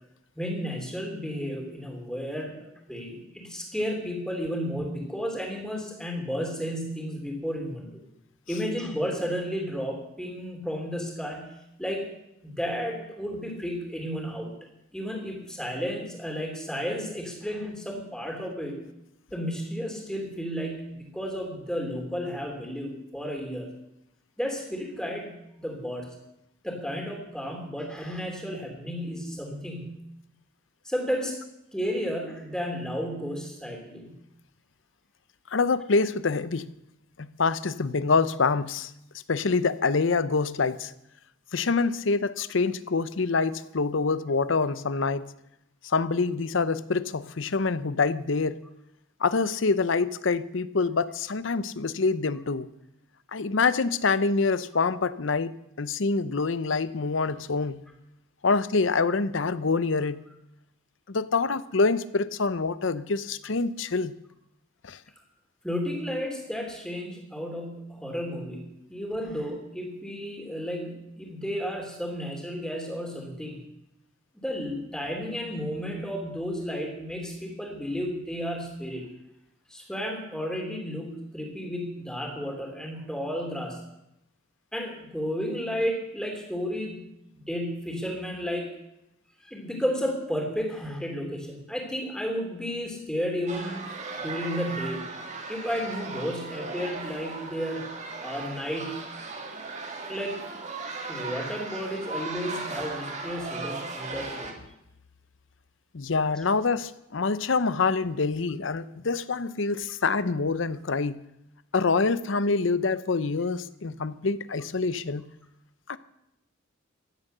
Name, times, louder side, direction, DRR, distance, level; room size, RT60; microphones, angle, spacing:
voice 1, 0.4-8.0 8.5-12.1 12.4-14.5 14.9-18.8 19.3-23.7 24.4-26.1 26.6-30.0 30.8-31.4 31.7-34.1 65.6-73.6 74.3-79.1 79.7-83.8 84.7-87.1 87.5-88.7 89.4-93.8 94.2-95.1 95.5-97.9 98.2-99.0 100.1-100.4 101.1-104.6, equal, 5° left, 2 dB, 3.2 m, -32 dB
voice 2, 35.5-36.7 37.2-38.9 39.3-40.9 41.5-45.3 45.8-48.6 49.2-52.7 53.3-57.8 58.4-60.2 61.1-64.1 64.8-65.0 105.9-111.2 111.7-115.2 115.9-116.0, left 4 dB, 65° left, 16 dB, 0.7 m, -26 dB
sound 1, 93.5-104.5, right 3 dB, 35° right, 2.1 m, -37 dB
15.0 x 11.0 x 6.8 m, 0.84 s
head